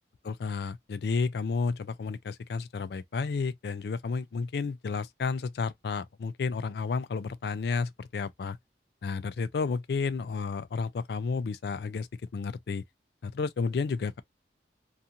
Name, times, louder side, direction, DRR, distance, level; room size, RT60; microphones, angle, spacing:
voice 1, 0.2-8.6 9.0-12.1 12.3-12.8 13.2-14.2, left 4 dB, 60° left, 0.3 m, -31 dB
2.5 x 2.4 x 2.7 m
head